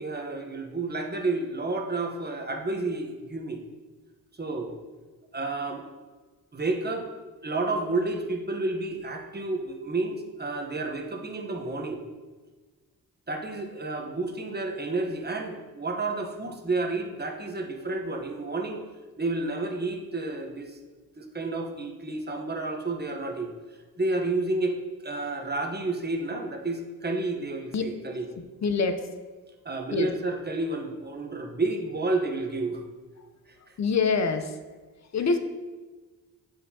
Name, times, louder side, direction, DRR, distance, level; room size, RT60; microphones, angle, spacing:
voice 1, 0.0-3.6 4.4-4.7 5.3-5.8 6.5-7.1 7.4-12.0 13.3-18.8 19.2-20.8 21.2-23.5 24.0-24.7 25.0-28.2 29.6-32.8 33.5-33.6, right 2 dB, 25° right, 3 dB, 1.0 m, -30 dB
voice 2, 28.6-29.1 29.9-30.1 33.2-33.3 33.8-34.6 35.1-35.4, left 4 dB, 45° left, 9 dB, 0.7 m, -25 dB
7.7 x 4.2 x 2.8 m, 1.3 s
supercardioid pair, 50°, 40 cm